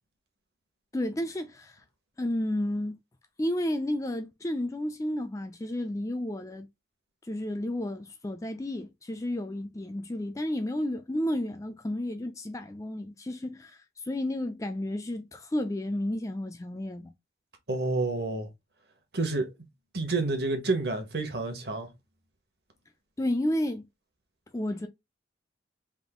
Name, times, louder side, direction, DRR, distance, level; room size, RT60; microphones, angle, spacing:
voice 1, 0.9-1.8 2.2-3.0 3.4-6.7 7.3-17.1 23.2-23.9 24.5-24.9, left 1 dB, 15° left, 0.4 m, -32 dB
voice 2, 17.7-18.5 19.1-19.5 19.9-21.9, right 3 dB, 60° right, 1.1 m, -29 dB
3.5 x 2.5 x 3.6 m
head